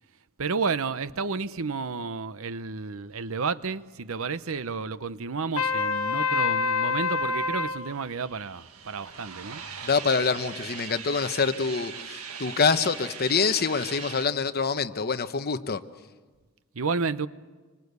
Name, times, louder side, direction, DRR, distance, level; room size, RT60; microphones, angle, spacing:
voice 1, 0.4-9.6 16.7-17.3, right 4 dB, 70° right, 0.8 m, -31 dB
Trumpet, 5.6-7.8, left 5 dB, 85° left, 1.3 m, -26 dB
sound 1, 7.2-14.3, right 7 dB, 85° right, 1.7 m, -41 dB
voice 2, 9.8-15.8, left 5 dB, 45° left, 1.0 m, -26 dB
26.5 x 24.0 x 8.2 m
head